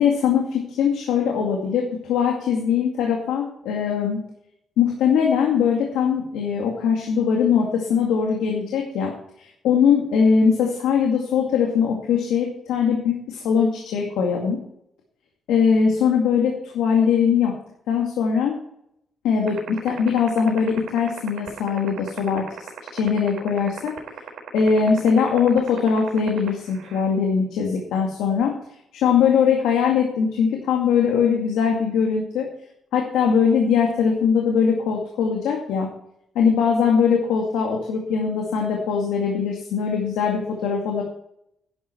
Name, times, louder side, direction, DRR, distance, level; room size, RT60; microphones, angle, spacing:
voice 1, 0.0-4.2 4.8-9.1 9.4-14.6 15.5-17.5 17.9-18.5 19.2-22.5 22.9-23.9 24.5-28.5 28.9-32.5 32.9-35.9 36.4-41.0, left 6 dB, 90° left, 0 dB, 2.2 m, -21 dB
sound 1, 19.5-27.0, right 10 dB, 80° right, 4.1 m, -34 dB
11.0 x 11.0 x 4.5 m, 0.75 s
cardioid pair, 90°, 0 cm